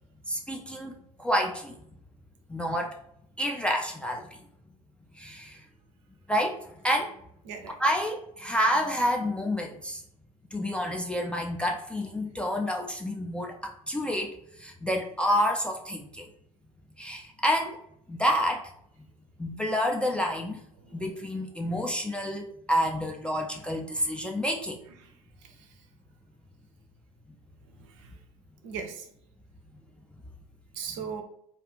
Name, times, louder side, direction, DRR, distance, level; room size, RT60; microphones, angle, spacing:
voice 1, 0.3-0.9 1.2-1.8 2.5-3.0 3.4-4.4 5.1-5.6 6.3-7.1 7.8-10.0 10.5-16.3 17.0-17.8 18.1-18.7 19.4-20.6 20.9-24.8, equal, 5° left, 1 dB, 0.3 m, -29 dB
voice 2, 27.8-28.1 28.6-29.1 30.7-31.2, right 6 dB, 55° right, 6 dB, 0.5 m, -39 dB
2.4 x 2.3 x 3.3 m, 0.73 s
figure-of-eight pair, 75°, 19 cm